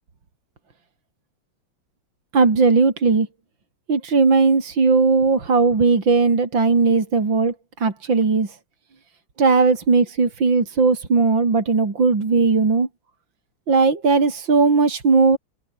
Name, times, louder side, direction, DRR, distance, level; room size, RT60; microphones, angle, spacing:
voice 1, 2.3-3.3 3.9-7.5 7.8-8.5 9.4-12.9 13.7-15.4, right 4 dB, 65° right, 4.3 m, -17 dB
omnidirectional pair, 2.2 m